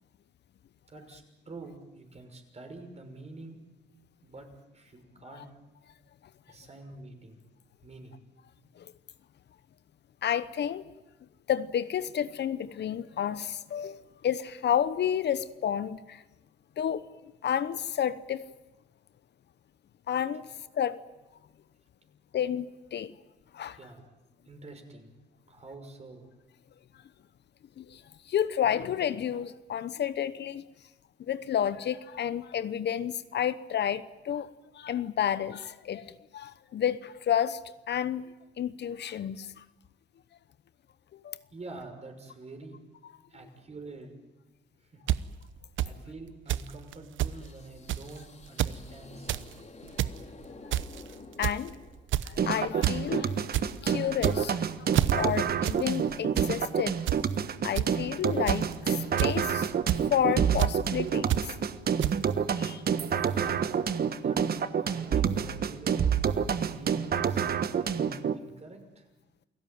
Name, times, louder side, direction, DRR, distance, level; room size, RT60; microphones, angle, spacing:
voice 1, 0.8-3.6 4.2-4.5 4.7-5.5 6.5-7.4 7.8-8.2 23.7-24.1 24.4-25.1 25.5-26.3 41.5-42.8 43.3-44.1 44.8-45.0 45.8-49.7 63.3-63.6 64.1-64.4 64.8-66.2 66.6-69.1, right 3 dB, 35° right, 6.0 m, -47 dB
voice 2, 10.2-10.8 11.5-16.2 16.8-17.0 17.4-18.4 20.1-21.0 22.3-23.1 23.5-23.8 27.8-30.6 31.2-34.5 34.7-38.2 38.6-39.6 41.1-41.4 50.0-50.1 51.4-51.8 52.2-57.0 57.6-59.7 60.1-61.5 62.6-62.8, left 9 dB, 60° left, 1.0 m, -31 dB
sound 1, 45.1-45.2 45.8-45.9 46.5-46.7 46.9-47.0 47.2-47.4 47.9-48.1 48.5-48.8 49.1-49.4 49.8-50.2 50.7-51.0 51.4-51.7 52.1-52.4 52.8-53.0 53.3-53.7 54.1-54.6 54.9-55.1 55.6-55.8 56.1-56.5 57.1-57.2 57.8-57.9 58.5-58.7 59.2-59.5 59.9-60.0 60.6-60.7 61.3-61.4 62.0-62.1, right 13 dB, 75° right, 0.9 m, -27 dB
sound 2, 47.3-52.4, left 3 dB, 35° left, 3.6 m, -50 dB
sound 3, 52.4-68.4, right 7 dB, 50° right, 1.3 m, -28 dB
29.0 x 17.5 x 9.4 m
cardioid pair, 90°, 20 cm